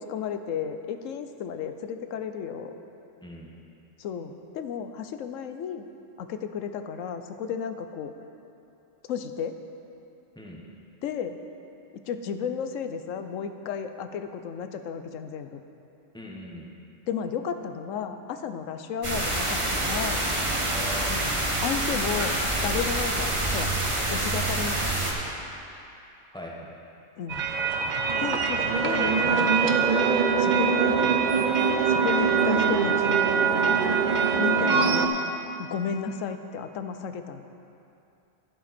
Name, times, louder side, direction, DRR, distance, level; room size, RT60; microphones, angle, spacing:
voice 1, 0.0-2.7 4.0-5.9 6.2-8.1 9.1-9.6 11.0-11.4 12.1-15.6 17.1-20.2 21.6-23.7 24.1-25.1 27.2-27.5 28.2-30.0 30.4-31.2 31.9-33.2 34.4-35.1 35.6-37.4, left 7 dB, 85° left, 8 dB, 1.0 m, -33 dB
voice 2, 16.1-16.7 20.7-21.5 26.3-26.8, left 1 dB, 5° left, -3 dB, 1.2 m, -40 dB
sound 1, 19.0-25.1, right 1 dB, 25° right, 1.2 m, -27 dB
sound 2, 27.3-35.1, right 5 dB, 50° right, 0.6 m, -23 dB
11.0 x 10.0 x 4.2 m, 2.7 s
omnidirectional pair, 1.3 m